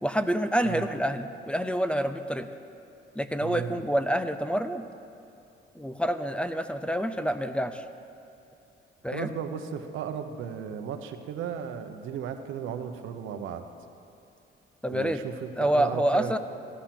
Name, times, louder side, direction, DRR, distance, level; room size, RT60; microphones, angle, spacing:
voice 1, 0.0-2.5 3.1-4.9 5.7-7.8 9.0-9.3 14.8-15.2 15.6-16.4, equal, 5° left, 10 dB, 0.7 m, -27 dB
voice 2, 3.4-3.8 9.1-13.6 14.9-16.3, right 8 dB, 85° right, 7 dB, 1.0 m, -35 dB
16.0 x 11.5 x 5.9 m, 2.7 s
cardioid pair, 90°, 20 cm